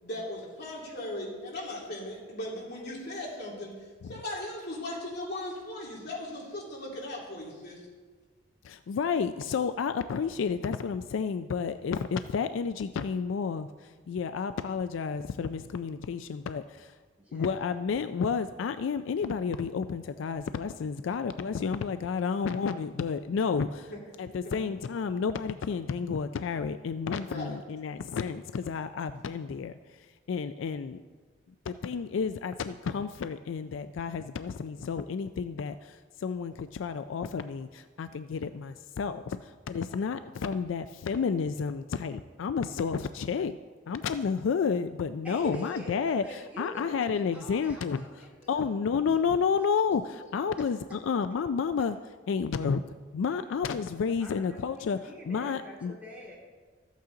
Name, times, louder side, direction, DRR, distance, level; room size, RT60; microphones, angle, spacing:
voice 1, 0.0-3.8 4.0-7.8 23.9-24.0 24.4-24.6 27.3-27.6 45.4-45.5, left 1 dB, 55° left, -3 dB, 2.7 m, -38 dB
voice 2, 8.6-16.9 17.3-23.9 24.2-29.7 30.3-31.0 31.7-43.5 43.9-48.0 48.5-50.0 50.3-52.0 52.3-52.8 53.1-56.0, left 6 dB, 75° left, 11 dB, 0.4 m, -31 dB
voice 3, 17.2-17.7 45.2-48.8 54.2-56.4, left 1 dB, 5° right, -4 dB, 2.6 m, -47 dB
14.0 x 8.3 x 3.8 m, 1.4 s
head